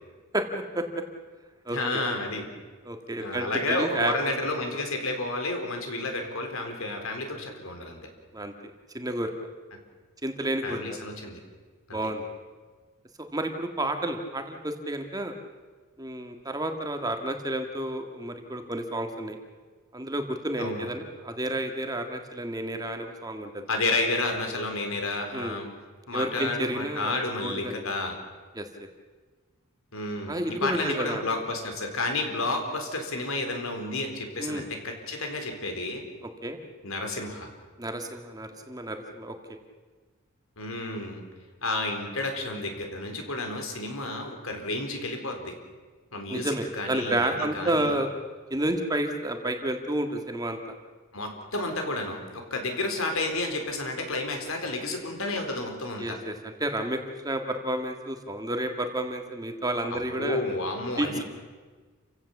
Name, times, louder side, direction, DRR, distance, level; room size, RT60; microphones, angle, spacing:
voice 1, 0.3-0.8 1.6-2.0 2.8-4.1 8.3-8.5 8.9-9.3 10.2-10.8 11.9-12.2 13.2-15.3 16.0-19.4 19.9-23.6 25.3-25.6 26.1-27.8 28.5-28.7 30.3-31.2 34.4-34.7 36.2-36.6 37.8-39.6 46.3-48.1 48.5-50.6 56.0-60.4 61.0-61.2, right 1 dB, 15° right, 5 dB, 1.7 m, -30 dB
voice 2, 1.7-2.5 3.2-8.0 10.6-11.4 11.9-12.0 20.6-20.9 23.7-25.7 26.1-28.1 29.9-36.0 36.8-37.5 40.6-41.2 41.6-45.5 46.1-47.9 51.1-56.2 59.9-61.2, left 2 dB, 70° left, 4 dB, 4.1 m, -31 dB
29.0 x 16.0 x 7.2 m, 1.4 s
head